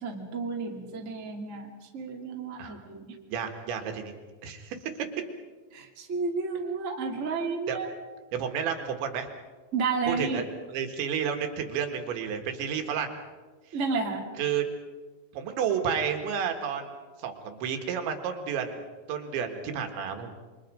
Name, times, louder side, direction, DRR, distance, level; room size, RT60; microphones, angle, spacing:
voice 1, 0.0-3.1 5.7-7.9 9.7-10.4 13.7-14.2, right 4 dB, 25° right, 0 dB, 1.8 m, -31 dB
voice 2, 3.3-4.1 4.4-4.8 7.7-7.8 8.3-9.3 10.1-10.4 10.7-13.2 14.4-14.6 15.3-16.9 17.2-18.8 19.1-20.3, right 7 dB, 75° right, 5 dB, 4.0 m, -31 dB
28.5 x 24.0 x 5.2 m, 1.4 s
omnidirectional pair, 5.4 m